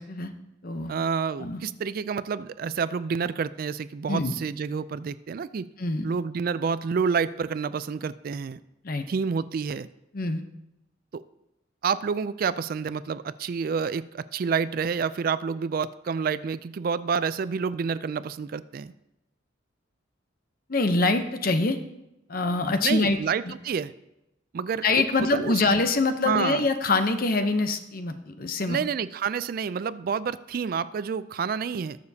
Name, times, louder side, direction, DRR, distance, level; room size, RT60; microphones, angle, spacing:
voice 1, 0.9-5.7 6.0-8.6 9.1-9.9 11.1-11.2 11.8-18.9 22.8-23.9 24.5-25.0 25.3-25.5 26.2-26.7 28.7-32.0, right 6 dB, 50° right, 15 dB, 0.3 m, -28 dB
voice 2, 20.7-21.8 22.3-23.2 23.5-23.6 24.8-28.8, left 3 dB, 50° left, 8 dB, 0.8 m, -24 dB
20.0 x 6.9 x 2.8 m, 0.90 s
head